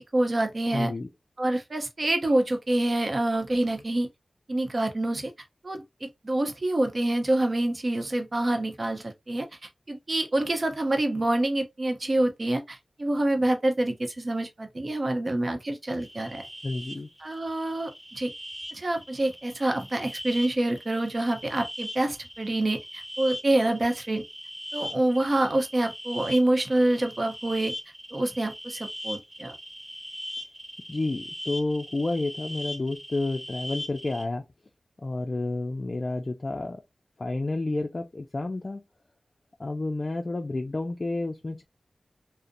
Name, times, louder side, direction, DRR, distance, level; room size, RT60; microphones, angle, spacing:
voice 1, 0.1-0.9 1.4-4.1 4.5-5.3 5.6-9.5 9.9-16.4 17.2-18.3 18.7-24.2 24.7-27.7 28.1-29.5, right 1 dB, 45° right, 0.7 m, -26 dB
voice 2, 0.7-1.1 16.6-17.1 30.9-34.4 35.0-36.8 37.2-38.8 39.6-41.6, left 2 dB, 45° left, 0.3 m, -30 dB
sound 1, 16.0-34.2, equal, 25° right, 1.3 m, -40 dB
2.5 x 2.0 x 2.5 m
wide cardioid pair, 60°, 0 cm